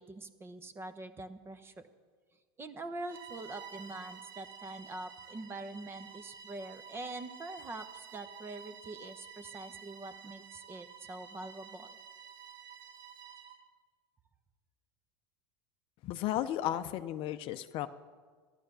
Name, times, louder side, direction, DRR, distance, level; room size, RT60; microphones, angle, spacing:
voice 1, 0.0-1.9 2.6-11.9, right 2 dB, 20° right, 11 dB, 0.9 m, -44 dB
Bowed string instrument, 3.0-13.7, right 7 dB, 35° right, 1.8 m, -51 dB
voice 2, 16.0-17.9, left 12 dB, 45° left, 11 dB, 0.6 m, -34 dB
13.5 x 11.5 x 6.8 m, 1.5 s
supercardioid pair, 120°, 13 cm